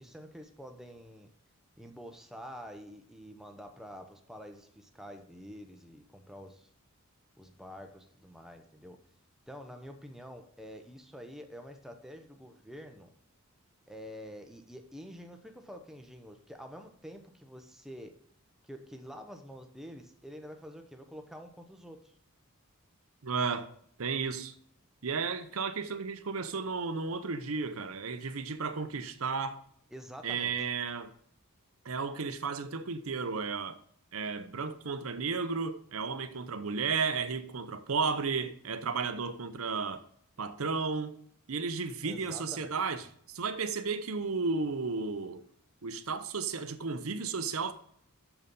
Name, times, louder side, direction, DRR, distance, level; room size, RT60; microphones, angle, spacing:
voice 1, 0.0-1.3 1.8-6.7 7.4-9.0 9.5-13.1 13.9-18.1 18.6-22.1 29.9-30.5 42.0-42.7, equal, ahead, 0.8 m, -47 dB
voice 2, 23.2-23.7 24.0-24.5 25.0-29.6 30.2-31.1 31.8-33.8 34.1-40.0 40.4-41.2 41.5-43.0 43.3-45.4 45.8-47.7, right 4 dB, 75° right, 0.8 m, -33 dB
6.9 x 6.6 x 5.3 m
head